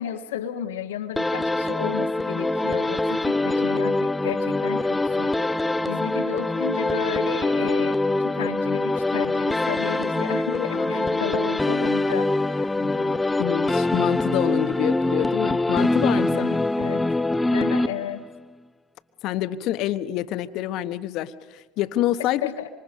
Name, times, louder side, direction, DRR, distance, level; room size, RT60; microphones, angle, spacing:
voice 1, 0.0-5.3 5.9-12.3 12.6-12.7 16.2-17.1 17.5-18.3 22.4-22.7, left 9 dB, 80° left, 8 dB, 1.6 m, -33 dB
sound 1, 1.2-18.4, left 2 dB, 10° left, 0.7 m, -24 dB
voice 2, 10.5-11.4 12.8-16.5 19.2-22.4, left 13 dB, 60° left, 12 dB, 1.2 m, -28 dB
26.5 x 26.0 x 5.4 m, 1.2 s
hypercardioid pair, 70°, 0 cm